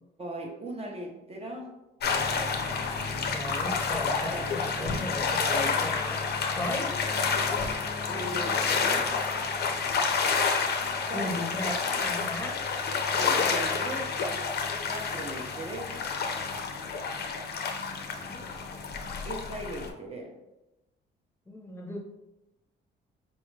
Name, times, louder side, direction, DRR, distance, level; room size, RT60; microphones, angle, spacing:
voice 1, 0.2-1.8 4.0-4.9 8.1-9.2 11.1-11.3 13.1-14.1 14.9-16.0 19.3-20.4, right 1 dB, 30° right, 0 dB, 0.6 m, -38 dB
sound 1, 2.0-19.9, left 5 dB, 55° left, 0.6 m, -29 dB
voice 2, 3.0-6.9 11.1-12.6 17.9-18.5 21.5-22.0, left 1 dB, 10° left, -1 dB, 0.7 m, -36 dB
4.1 x 2.3 x 3.1 m, 0.97 s
cardioid pair, 90°, 20 cm